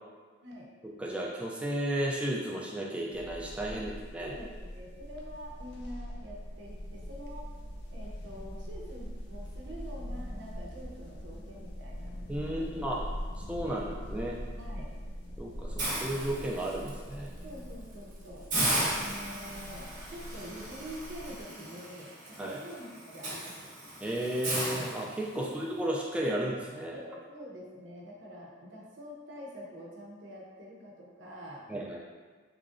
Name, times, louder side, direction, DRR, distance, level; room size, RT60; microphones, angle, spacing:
voice 1, 0.8-4.3 12.3-13.0 13.5-14.4 15.4-17.3 22.4-22.6 24.0-26.9 31.7-32.0, right 1 dB, 5° right, -3 dB, 0.3 m, -33 dB
sound 1, 3.1-21.4, equal, 65° left, 0.5 m, -42 dB
voice 2, 4.2-7.5 7.9-12.1 12.4-12.9 13.6-13.8 14.6-14.9 17.4-18.5 18.9-22.1 22.4-23.5 25.3-25.6 26.9-31.6, equal, 80° right, -3 dB, 0.7 m, -46 dB
Hiss, 15.8-16.9 17.4-17.6 17.9-18.0 18.5-25.6, right 1 dB, 40° right, 0.8 m, -35 dB
3.7 x 3.0 x 2.5 m, 1.4 s
head